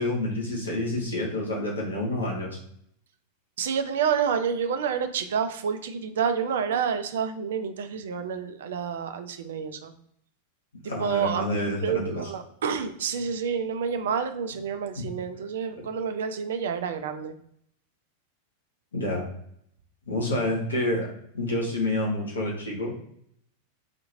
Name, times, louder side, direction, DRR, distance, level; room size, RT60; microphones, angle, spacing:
voice 1, 0.0-2.6 10.9-12.3 15.0-15.1 18.9-19.3 20.1-21.1 21.3-23.0, left 1 dB, 70° left, -2 dB, 1.1 m, -28 dB
voice 2, 3.6-9.9 11.0-11.5 11.8-17.3, right 7 dB, 60° right, 8 dB, 0.5 m, -28 dB
5.0 x 2.8 x 2.7 m, 0.70 s
figure-of-eight pair, 90°, 0 cm